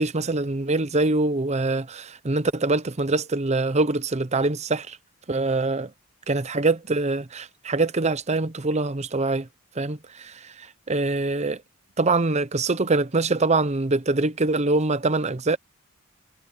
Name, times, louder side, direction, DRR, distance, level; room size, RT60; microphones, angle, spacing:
voice 1, 0.0-5.0 5.3-5.9 6.3-9.5 9.8-10.3 10.9-11.6 12.0-15.6, right 3 dB, 30° right, 0.8 m, -24 dB
head